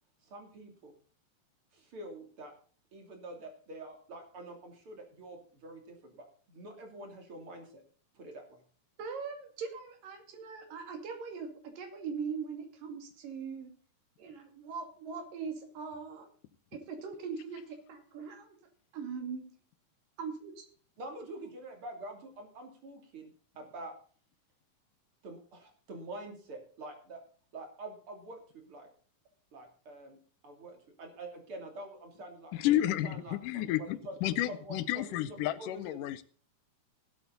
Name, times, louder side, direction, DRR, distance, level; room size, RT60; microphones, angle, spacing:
voice 1, 0.3-0.9 1.7-2.5 2.9-7.8 8.2-8.6 21.0-23.9 25.2-27.2 27.5-28.9 29.5-30.2 30.4-32.6 33.0-36.1, right 2 dB, 40° right, 3 dB, 3.5 m, -46 dB
voice 2, 9.0-13.7 14.2-16.3 16.7-18.6 18.9-19.5 20.2-20.7, right 5 dB, 85° right, 5 dB, 4.0 m, -41 dB
voice 3, 32.5-36.2, left 13 dB, 85° left, 16 dB, 2.3 m, -31 dB
18.0 x 8.0 x 4.0 m, 0.43 s
omnidirectional pair, 3.8 m